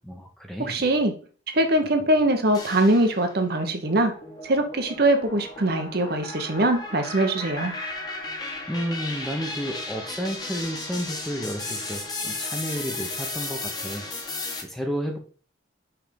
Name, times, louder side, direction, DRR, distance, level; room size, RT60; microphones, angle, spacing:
voice 1, 0.0-0.7 8.2-14.0 14.6-15.2, equal, ahead, 2 dB, 0.9 m, -32 dB
voice 2, 0.6-1.1 1.5-4.1 4.4-7.7, right 1 dB, 55° right, 6 dB, 0.9 m, -22 dB
sound 1, 2.5-3.4 3.9-14.6, left 2 dB, 20° left, 1.3 m, -35 dB
5.8 x 3.5 x 5.1 m, 0.42 s
head